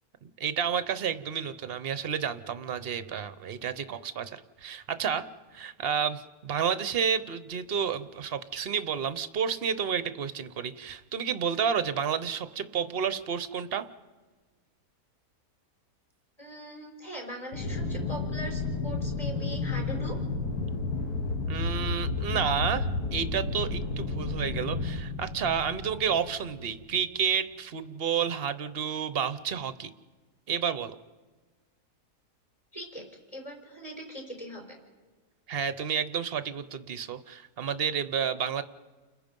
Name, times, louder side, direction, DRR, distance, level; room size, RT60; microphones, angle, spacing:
voice 1, 0.2-5.2 5.5-13.8 21.5-29.9 30.5-30.9 35.5-38.6, right 7 dB, 50° right, 12 dB, 0.8 m, -30 dB
voice 2, 16.4-20.2 32.7-33.0 33.3-34.8, right 1 dB, 15° left, 1 dB, 4.8 m, -41 dB
Aircraft, 17.5-27.0, left 3 dB, 80° left, 1.9 m, -32 dB
29.5 x 21.5 x 5.3 m, 1.4 s
omnidirectional pair, 1.6 m